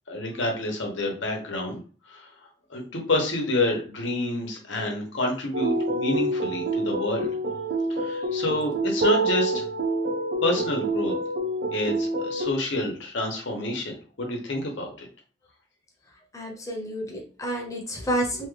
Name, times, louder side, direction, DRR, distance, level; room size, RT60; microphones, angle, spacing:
voice 1, 0.1-1.8 2.1-2.3 2.7-7.3 7.9-9.6 10.4-11.1 11.7-15.1, left 2 dB, 85° left, 1 dB, 0.9 m, -28 dB
sound 1, 5.5-12.5, right 1 dB, 65° right, 0.5 m, -27 dB
voice 2, 16.3-18.5, equal, 15° left, 0 dB, 0.7 m, -30 dB
2.9 x 2.3 x 3.2 m, 0.39 s
head